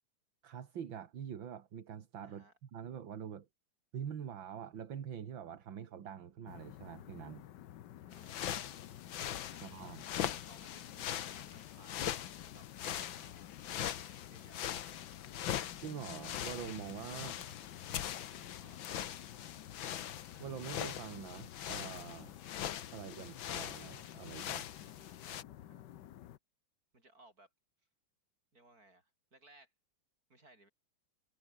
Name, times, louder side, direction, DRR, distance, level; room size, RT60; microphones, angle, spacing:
voice 1, 0.4-3.5 3.9-7.4 9.6-10.0 15.8-17.4 20.4-22.3 22.9-24.7, right 8 dB, 75° right, 2.3 m, -45 dB
voice 2, 2.2-2.5 8.0-8.9 9.5-12.7 13.0-13.6 14.3-15.0 17.2-19.0 24.8-25.2 25.6-25.8 26.9-27.5 28.5-29.7 30.3-30.7, right 2 dB, 50° right, 7.7 m, -63 dB
sound 1, 6.5-26.4, left 12 dB, 70° left, 1.4 m, -52 dB
sound 2, 8.1-25.4, left 11 dB, 85° left, 1.9 m, -42 dB
omnidirectional pair, 2.1 m